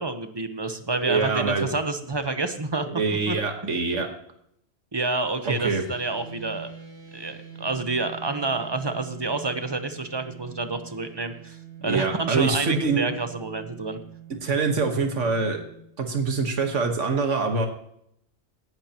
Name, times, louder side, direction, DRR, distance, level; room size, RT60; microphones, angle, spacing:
voice 1, 0.0-2.9 3.3-3.4 3.6-3.7 4.9-6.7 7.1-14.0, right 3 dB, 25° right, 7 dB, 0.9 m, -29 dB
voice 2, 1.0-1.7 2.9-4.1 5.4-5.8 11.8-13.0 14.4-15.6 16.0-17.7, right 4 dB, 85° right, 4 dB, 1.8 m, -24 dB
sound 1, 5.5-15.8, right 9 dB, 40° right, 5.7 m, -44 dB
17.5 x 11.0 x 3.0 m, 0.72 s
omnidirectional pair, 1.2 m